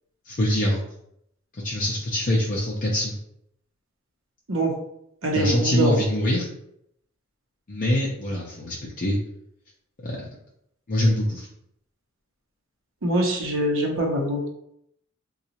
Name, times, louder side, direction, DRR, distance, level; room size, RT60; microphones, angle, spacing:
voice 1, 0.3-0.9 1.6-3.2 5.3-6.5 7.7-9.2 10.0-10.3 10.9-11.5, left 1 dB, 40° left, -4 dB, 0.5 m, -24 dB
voice 2, 5.2-6.0 13.0-14.5, right 1 dB, 65° right, 1 dB, 0.8 m, -23 dB
3.9 x 2.3 x 2.9 m, 0.75 s
head